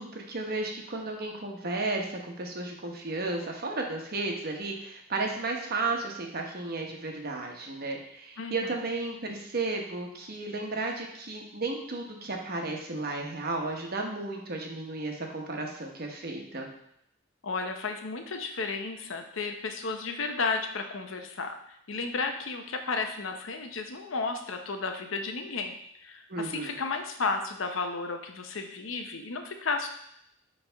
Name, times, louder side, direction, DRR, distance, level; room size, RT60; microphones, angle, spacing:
voice 1, 0.0-16.7 26.3-26.8, right 3 dB, 50° right, 2 dB, 1.1 m, -33 dB
voice 2, 8.4-8.8 17.4-29.9, left 4 dB, 85° left, 5 dB, 0.8 m, -33 dB
9.9 x 3.4 x 3.5 m, 0.74 s
head